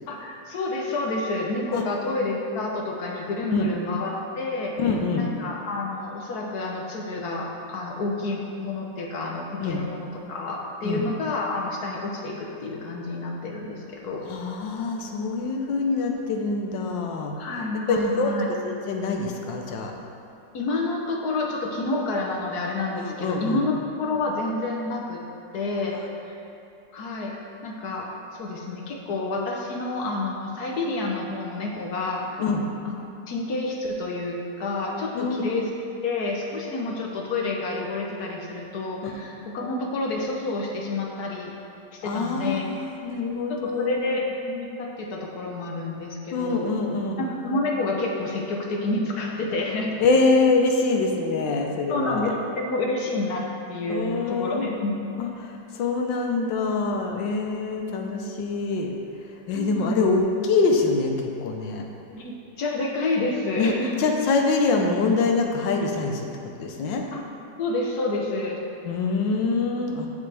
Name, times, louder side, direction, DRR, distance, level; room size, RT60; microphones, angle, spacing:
voice 1, 0.1-4.8 5.2-14.3 17.4-18.5 20.5-25.2 25.5-26.0 26.2-26.4 26.9-27.3 27.6-32.3 32.8-33.0 33.3-35.7 36.0-41.5 41.9-42.6 43.5-46.7 47.2-50.0 51.9-55.1 59.5-60.1 62.1-64.1 67.1-67.2 67.6-68.6, left 2 dB, 65° left, -1 dB, 1.4 m, -29 dB
voice 2, 4.8-5.3 9.6-9.8 10.8-11.0 14.2-17.4 17.9-18.3 18.6-19.9 23.0-23.6 32.4-32.6 35.1-35.6 42.0-44.2 46.3-47.2 50.0-52.3 53.9-54.7 55.2-55.3 55.7-58.9 59.5-61.8 63.6-63.7 64.0-66.3 66.6-67.1 68.8-70.1, left 3 dB, 85° left, 2 dB, 1.6 m, -24 dB
15.0 x 5.3 x 3.4 m, 2.6 s
omnidirectional pair, 1.9 m